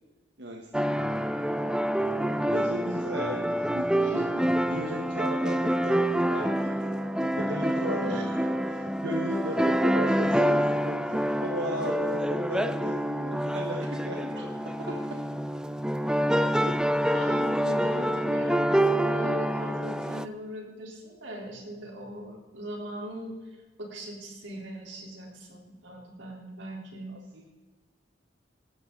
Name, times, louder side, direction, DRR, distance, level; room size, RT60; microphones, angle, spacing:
voice 1, 0.4-1.1 1.6-14.3 14.8-14.9 16.5-16.7 27.1-27.4, equal, 65° right, 1 dB, 1.4 m, -36 dB
sound 1, 0.7-20.3, equal, 5° right, 0.4 m, -27 dB
voice 2, 17.1-23.3 23.8-27.1, equal, 85° right, -1 dB, 3.8 m, -39 dB
17.5 x 12.5 x 4.0 m, 1.3 s
head